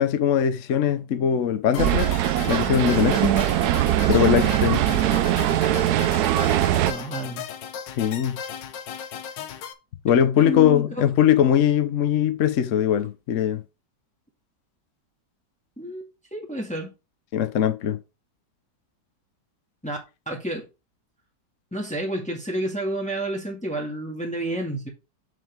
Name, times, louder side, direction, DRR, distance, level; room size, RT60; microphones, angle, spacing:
voice 1, 0.0-2.2 2.5-3.3 4.1-4.8 8.0-8.4 10.0-13.6 17.3-18.0, left 9 dB, 55° left, 1.0 m, -21 dB
sound 1, 1.7-9.7, left 8 dB, 85° left, 1.5 m, -36 dB
sound 2, 1.8-6.9, right 13 dB, 70° right, 1.0 m, -21 dB
voice 2, 4.9-5.3 6.8-7.5 10.4-11.1 15.8-16.1 16.3-16.9 19.8-20.0 20.3-20.7 21.7-24.9, right 1 dB, 5° left, 1.7 m, -30 dB
7.1 x 6.3 x 3.5 m
omnidirectional pair, 1.9 m